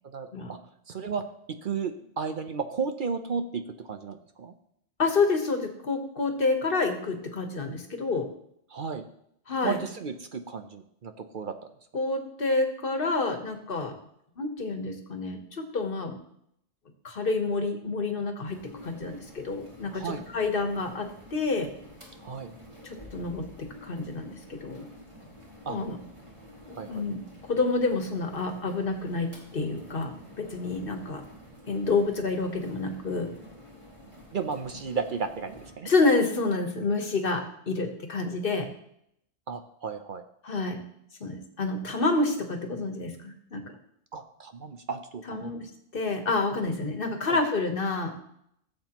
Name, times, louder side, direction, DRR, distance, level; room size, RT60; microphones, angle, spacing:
voice 1, 0.0-0.6 0.9-1.2 1.5-4.5 8.7-9.0 9.6-11.5 19.9-20.2 22.2-22.5 25.7-25.8 26.7-27.0 34.3-35.9 39.5-40.2 44.1-45.5 47.3-47.4, right 5 dB, 50° right, 7 dB, 0.8 m, -34 dB
voice 2, 5.0-8.2 9.5-9.8 11.9-13.9 14.4-16.2 17.0-21.7 22.8-23.4 23.8-24.9 25.7-26.0 26.7-31.2 31.7-33.3 35.8-38.7 40.4-40.8 41.2-43.6 45.3-45.6 45.9-48.1, left 3 dB, 55° left, 5 dB, 1.5 m, -28 dB
sound 1, 18.5-35.7, left 1 dB, 25° right, 2.4 m, -49 dB
16.0 x 7.5 x 3.0 m, 0.74 s
omnidirectional pair, 1.2 m